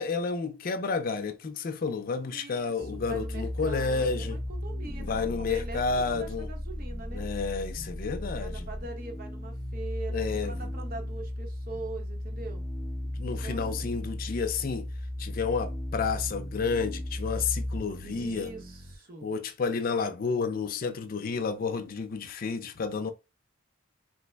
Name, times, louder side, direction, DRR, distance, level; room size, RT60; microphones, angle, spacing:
voice 1, 0.0-4.4 5.0-6.5 7.1-8.7 10.1-10.6 13.1-14.9 15.2-18.5 19.2-23.1, left 5 dB, 45° left, 0.4 m, -31 dB
voice 2, 2.3-7.3 8.4-12.6 13.2-14.0 18.0-19.3, right 3 dB, 50° right, 0.8 m, -43 dB
sound 1, 2.8-19.0, left 1 dB, 5° left, 0.7 m, -36 dB
3.2 x 2.1 x 3.2 m
head